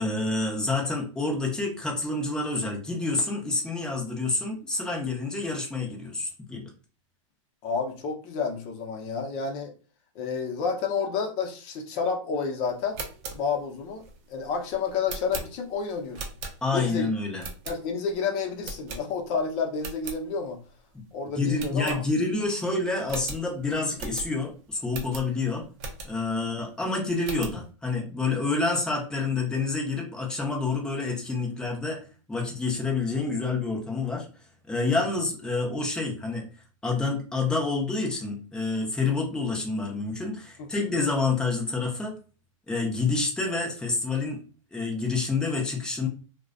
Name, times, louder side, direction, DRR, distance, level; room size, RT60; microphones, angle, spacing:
voice 1, 0.0-6.7 16.6-17.5 20.9-21.0 21.3-25.7 26.0-32.0 32.3-34.3 34.7-36.5 36.8-42.2 42.7-44.4 44.7-46.1, left 3 dB, 5° left, -1 dB, 0.6 m, -28 dB
voice 2, 7.6-9.7 10.1-13.0 13.3-14.0 14.3-16.2 16.7-17.1 17.7-20.6 21.1-22.0 26.3-26.5 34.7-35.0 40.6-40.7, left 5 dB, 45° left, 3 dB, 0.7 m, -30 dB
sound 1, 12.8-16.9 17.4-18.1 18.6-19.4 19.7-20.2 20.6-20.7 21.0-21.1 21.5-22.5 22.7-22.8 23.0-26.4 26.8-27.6, right 3 dB, 45° right, 0.6 m, -40 dB
2.4 x 2.1 x 2.4 m, 0.36 s
hypercardioid pair, 130°, 17 cm